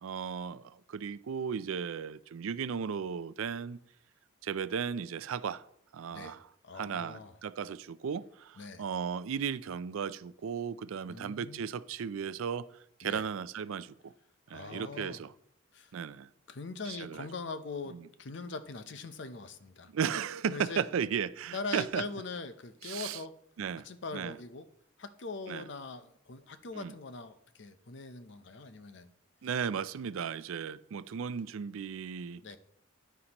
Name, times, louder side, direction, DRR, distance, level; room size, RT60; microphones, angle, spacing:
voice 1, 0.0-3.8 4.4-5.6 5.9-6.5 6.7-12.7 13.0-14.1 14.5-15.3 15.9-16.3 16.9-17.3 17.9-18.0 19.9-22.0 22.8-23.2 23.6-23.9 24.1-24.4 25.5-25.6 26.7-26.9 29.4-32.4, right 7 dB, 80° right, 0.4 m, -35 dB
voice 2, 6.1-7.4 8.6-8.9 11.1-11.7 13.0-13.3 14.5-15.2 15.7-15.9 16.5-19.9 20.5-20.9 21.5-23.4 23.8-24.7 25.0-29.1 32.4-32.6, left 3 dB, 55° left, 0.6 m, -42 dB
10.0 x 9.4 x 2.9 m
head